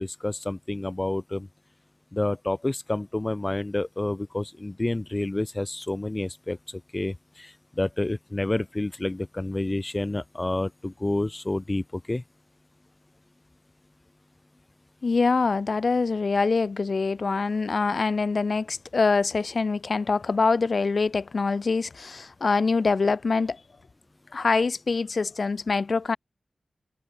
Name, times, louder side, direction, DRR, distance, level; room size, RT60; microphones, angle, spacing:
voice 1, 0.0-1.5 2.1-12.2, left 2 dB, 25° left, 1.8 m, -29 dB
voice 2, 15.0-23.6 24.3-26.2, left 4 dB, 55° left, 2.3 m, -24 dB
wide cardioid pair, 120°, 0 cm